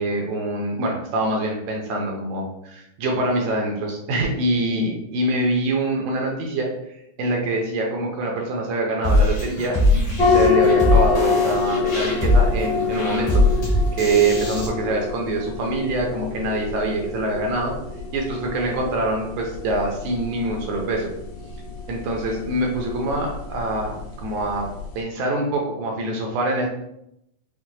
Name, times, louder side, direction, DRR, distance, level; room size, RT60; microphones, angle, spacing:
voice 1, 0.0-6.7 7.2-17.7 18.1-21.1 21.9-24.7 25.0-26.7, right 2 dB, 80° right, 1 dB, 2.0 m, -25 dB
sound 1, 9.0-14.7, left 1 dB, 45° left, 1.5 m, -21 dB
sound 2, 10.2-25.0, left 5 dB, 70° left, 2.1 m, -26 dB
5.9 x 2.1 x 2.7 m, 0.79 s
omnidirectional pair, 3.6 m